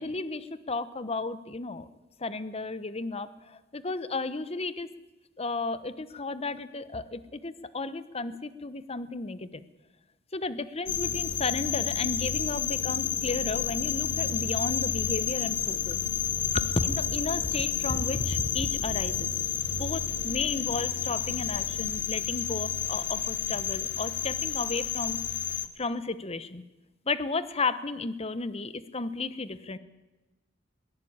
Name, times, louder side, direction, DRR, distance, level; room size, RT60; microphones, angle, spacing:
voice 1, 0.0-1.9 2.2-4.9 5.4-9.6 10.3-16.0 16.5-19.3 19.8-26.6 27.1-29.8, left 3 dB, 30° left, 14 dB, 1.1 m, -33 dB
sound 1, 10.9-25.7, left 8 dB, 65° left, 1.5 m, -30 dB
22.0 x 18.0 x 8.8 m, 1.1 s
head